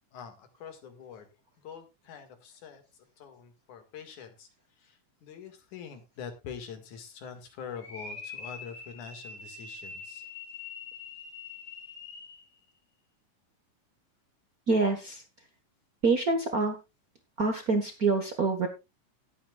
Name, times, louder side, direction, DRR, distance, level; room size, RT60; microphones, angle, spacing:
voice 1, 0.1-1.3 1.6-2.8 3.2-4.5 4.8-10.2, left 7 dB, 65° left, 7 dB, 3.1 m, -44 dB
sound 1, 7.8-12.5, left 4 dB, 85° left, 6.6 m, -44 dB
voice 2, 14.7-15.5 16.0-16.8 17.4-18.7, right 3 dB, 70° right, 5 dB, 0.8 m, -26 dB
19.0 x 8.9 x 2.3 m, 0.24 s
omnidirectional pair, 3.8 m